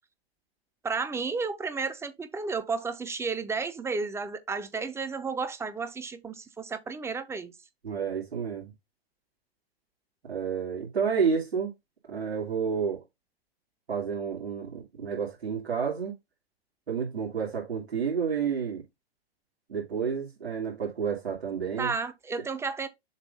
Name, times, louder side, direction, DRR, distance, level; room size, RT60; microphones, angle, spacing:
voice 1, 0.8-7.5 21.8-22.9, right 4 dB, 10° right, 0.6 m, -32 dB
voice 2, 7.8-8.7 10.2-11.7 12.1-13.0 13.9-16.1 16.9-18.8 19.7-21.9, right 6 dB, 85° right, 2.6 m, -30 dB
7.2 x 2.6 x 5.3 m
hypercardioid pair, 115°, 31 cm